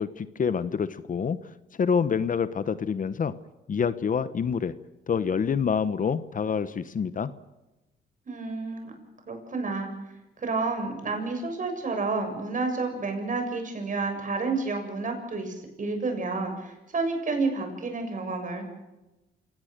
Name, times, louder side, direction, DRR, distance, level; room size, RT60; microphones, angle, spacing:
voice 1, 0.0-1.4 1.8-3.3 3.7-4.7 5.1-7.3, left 6 dB, 40° left, 14 dB, 1.0 m, -27 dB
voice 2, 8.3-8.9 9.3-9.9 10.4-18.6, right 3 dB, 40° right, 5 dB, 7.1 m, -30 dB
28.0 x 18.5 x 6.7 m, 1.0 s
cardioid pair, 90°, 20 cm